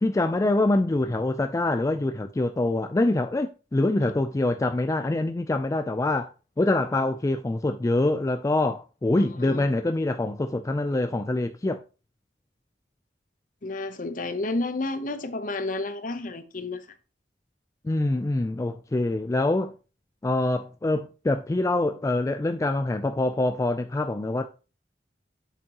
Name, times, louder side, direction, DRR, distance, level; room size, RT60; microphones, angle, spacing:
voice 1, 0.0-6.3 6.6-11.8 17.8-19.7 20.2-24.5, left 2 dB, 20° left, 0.3 m, -25 dB
voice 2, 9.2-9.7 13.6-16.9, left 2 dB, 50° left, 0.8 m, -31 dB
7.8 x 7.2 x 2.9 m
head